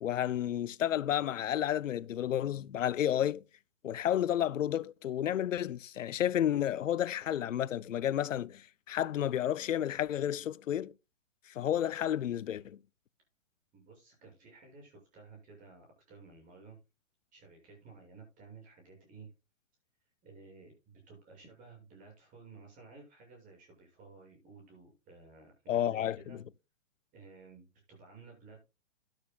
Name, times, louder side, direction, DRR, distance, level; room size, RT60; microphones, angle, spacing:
voice 1, 0.0-3.4 3.8-10.9 11.5-12.8 25.7-26.2, left 11 dB, 85° left, 0.7 m, -31 dB
voice 2, 13.7-16.8 17.3-19.3 20.2-26.4 27.1-28.6, right 4 dB, 20° right, 7.0 m, -54 dB
13.0 x 11.5 x 2.3 m
hypercardioid pair, 155°, 37 cm